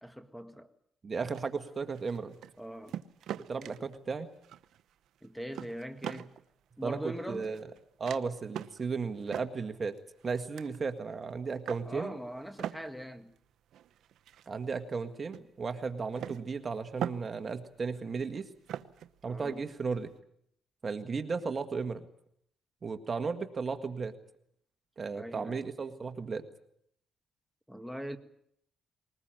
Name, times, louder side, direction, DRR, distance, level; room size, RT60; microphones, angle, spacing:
voice 1, 0.0-0.7 2.6-3.0 5.2-6.3 6.8-7.5 11.8-13.3 19.3-19.6 25.1-25.6 27.7-28.2, equal, ahead, 1.8 m, -41 dB
voice 2, 1.0-2.3 3.5-4.3 6.8-7.0 7.3-7.6 8.0-9.9 10.2-12.1 14.5-18.5 19.2-20.1 20.8-22.1 22.8-24.1 25.0-26.4, right 5 dB, 35° right, 1.7 m, -35 dB
sound 1, 1.3-2.6 2.9-4.0 4.4-4.9 5.2-6.4 7.0-7.8 8.0-8.2 8.5-8.8 9.2-10.8 11.3-11.9 12.4-15.1 15.3-15.4 16.1-17.6 17.9-20.1, right 10 dB, 75° right, 0.9 m, -42 dB
21.0 x 20.0 x 9.0 m
cardioid pair, 90°, 0 cm